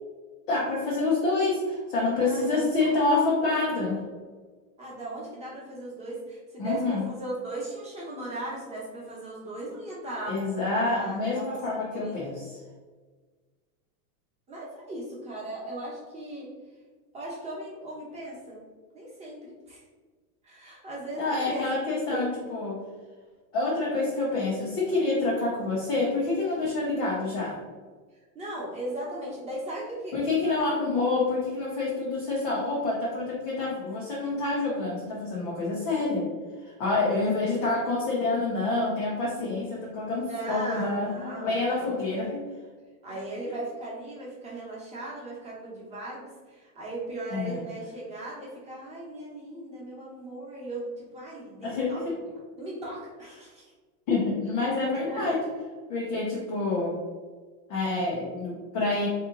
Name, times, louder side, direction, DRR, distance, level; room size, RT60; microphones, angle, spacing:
voice 1, 0.5-4.0 6.6-7.0 10.3-12.3 21.2-22.8 23.5-27.6 30.1-36.3 36.7-42.4 47.3-47.6 51.6-52.2 54.1-55.4 55.9-57.0 57.7-59.1, left 3 dB, 25° left, -5 dB, 0.4 m, -27 dB
voice 2, 2.2-3.0 4.8-10.4 10.8-12.1 14.5-16.5 17.1-18.6 18.9-19.8 20.4-21.7 22.1-22.3 28.3-30.6 37.1-37.3 40.2-42.4 43.0-52.0 52.6-53.7 55.0-55.4, right 1 dB, 15° right, -5 dB, 0.9 m, -38 dB
3.6 x 2.9 x 3.6 m, 1.4 s
supercardioid pair, 160°, 46 cm